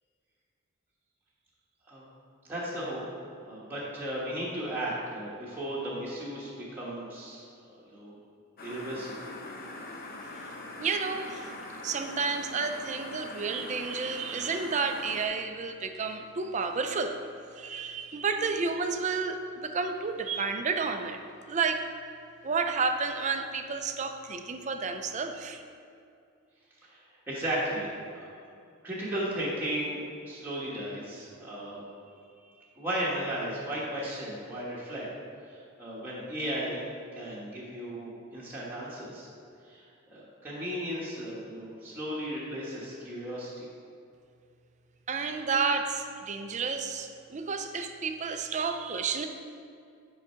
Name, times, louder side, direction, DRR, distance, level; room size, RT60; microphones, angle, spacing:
voice 1, 2.4-3.0 3.3-8.2 8.6-9.3 26.8-27.0 27.3-27.9 28.1-28.3 28.8-30.0 30.2-31.8 32.8-35.1 35.5-36.8 37.1-39.3 39.7-39.8 40.1-43.7, right 1 dB, 10° right, -8 dB, 1.3 m, -35 dB
sound 1, 8.6-15.3, left 2 dB, 45° left, 0.8 m, -42 dB
voice 2, 10.8-11.5 11.8-17.2 17.6-21.2 21.5-21.8 22.4-25.6 45.1-49.3, right 4 dB, 35° right, 7 dB, 0.4 m, -31 dB
6.3 x 4.8 x 5.5 m, 2.4 s
head